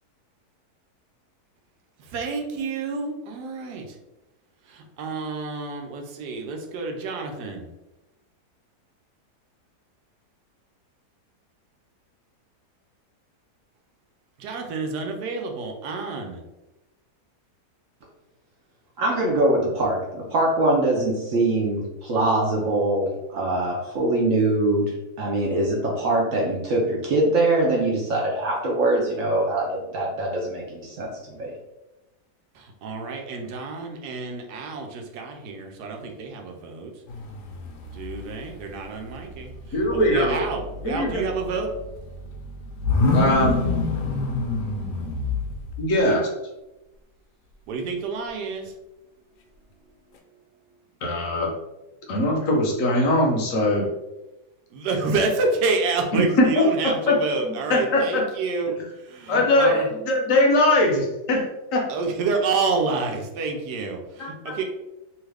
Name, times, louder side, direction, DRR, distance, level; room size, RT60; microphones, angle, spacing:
voice 1, 2.1-4.0 4.7-7.7 14.4-16.4 32.6-36.9 37.9-39.5 39.9-41.7 47.7-48.7 54.7-58.7 59.0-59.9 61.9-64.6, right 4 dB, 85° right, 3 dB, 1.2 m, -28 dB
voice 2, 19.0-24.9 25.2-31.5, right 2 dB, 65° right, -2 dB, 0.9 m, -23 dB
sound 1, 37.1-38.5 38.8-45.9, left 3 dB, 85° left, 1.2 m, -28 dB
voice 3, 39.7-40.5 40.8-41.2 43.1-43.6 45.8-46.3 51.0-51.5 52.1-53.9 56.1-57.2 57.4-58.2 59.3-61.9 64.2-64.3, left 1 dB, 65° left, -1 dB, 0.9 m, -21 dB
3.0 x 2.4 x 3.2 m, 1.0 s
omnidirectional pair, 1.7 m